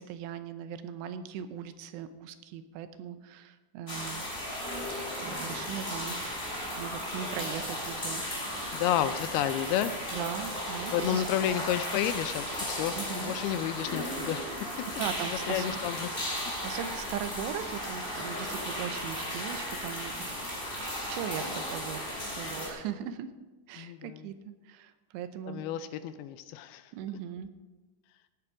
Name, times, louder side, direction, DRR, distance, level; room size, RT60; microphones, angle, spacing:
voice 1, 0.0-4.2 5.2-6.4 6.8-8.5 10.1-11.2 13.0-13.4 15.0-15.8 16.6-22.0 22.4-23.3 23.7-25.7 26.9-27.5, right 9 dB, 85° right, 10 dB, 2.9 m, -39 dB
sound 1, 3.9-22.7, equal, 10° left, 4.3 m, -35 dB
voice 2, 5.2-5.7 8.4-10.2 10.9-14.9 15.3-16.1 23.8-24.3 25.5-26.9, left 11 dB, 85° left, 11 dB, 2.3 m, -32 dB
17.0 x 8.6 x 4.9 m, 1.2 s
omnidirectional pair, 5.0 m